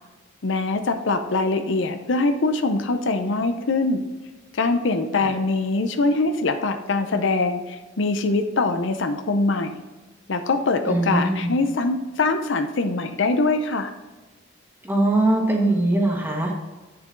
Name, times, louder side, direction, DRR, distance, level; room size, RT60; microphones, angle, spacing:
voice 1, 0.4-4.0 4.5-9.7 10.3-13.9, left 3 dB, 65° left, 7 dB, 0.6 m, -23 dB
voice 2, 10.9-11.5 14.8-16.5, right 2 dB, 10° right, 0 dB, 1.5 m, -21 dB
8.4 x 6.8 x 3.8 m, 1.2 s
head